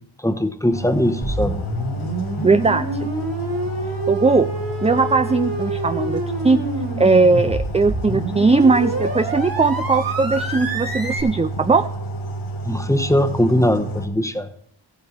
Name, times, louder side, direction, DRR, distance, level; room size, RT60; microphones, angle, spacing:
voice 1, 0.2-1.6 2.4-2.5 12.6-14.5, left 1 dB, 5° left, 8 dB, 1.1 m, -20 dB
sound 1, 0.7-14.1, right 2 dB, 90° left, 1.6 m, -30 dB
sound 2, 1.2-11.2, right 1 dB, 45° right, 2.7 m, -27 dB
voice 2, 2.4-3.1 4.1-4.5 4.8-6.6 7.0-11.9, right 4 dB, 15° right, 11 dB, 0.4 m, -18 dB
14.0 x 8.8 x 4.4 m, 0.67 s
cardioid pair, 45°, 47 cm